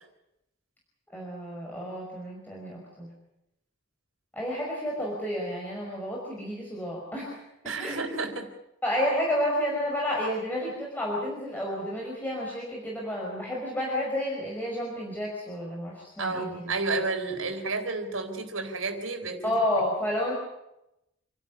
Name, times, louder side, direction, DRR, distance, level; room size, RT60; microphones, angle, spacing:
voice 1, 1.1-3.1 4.3-7.4 7.6-8.0 8.8-16.7 19.4-20.4, equal, 10° left, -4 dB, 5.6 m, -30 dB
voice 2, 7.6-8.5 16.2-19.6, right 3 dB, 75° right, 4 dB, 4.4 m, -31 dB
28.5 x 12.5 x 9.9 m, 0.87 s
head